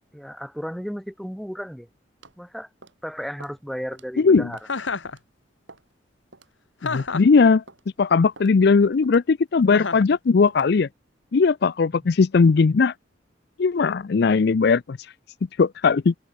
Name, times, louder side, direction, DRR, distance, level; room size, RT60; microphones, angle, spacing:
voice 1, 0.1-1.9 2.4-2.7 3.0-4.6, equal, ahead, 3.4 m, -34 dB
sound 1, 2.2-2.4 2.8-3.0 3.4-3.6 3.9-4.1 4.5-4.8 5.0-5.2 5.7-5.9 6.3-6.5 7.0-7.2 7.7-7.8 8.4-8.5 9.0-9.3 9.7-9.9 10.5-10.7, right 3 dB, 80° right, 6.5 m, -47 dB
voice 2, 4.2-4.5 6.8-7.6 8.0-10.9 11.3-12.9 13.6-15.0 15.6-16.1, left 4 dB, 60° left, 0.4 m, -18 dB
Chuckle chortle, 4.7-5.2 6.8-7.4 9.7-10.1, left 4 dB, 85° left, 1.6 m, -29 dB
head